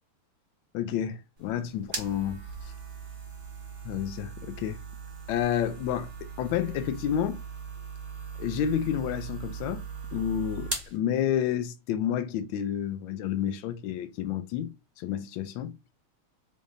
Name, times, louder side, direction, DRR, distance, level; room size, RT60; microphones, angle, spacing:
voice 1, 0.7-2.4 3.8-4.8 5.3-7.4 8.4-9.8 10.1-14.7 15.0-15.7, left 10 dB, 75° left, 1.3 m, -30 dB
sound 1, 1.4-11.0, right 5 dB, 35° right, 1.0 m, -39 dB
3.9 x 3.5 x 2.4 m
omnidirectional pair, 2.4 m